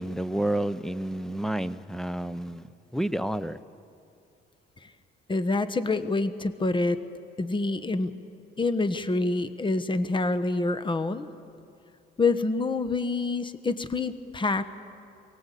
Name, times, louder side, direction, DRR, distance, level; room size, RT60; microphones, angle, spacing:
voice 1, 0.0-2.7 2.9-3.6, right 1 dB, ahead, 15 dB, 0.7 m, -30 dB
voice 2, 5.3-7.0 7.4-8.1 8.6-11.3 12.2-14.7, left 3 dB, 25° left, 12 dB, 1.1 m, -26 dB
23.0 x 18.0 x 8.4 m, 2.5 s
cardioid pair, 90°, 20 cm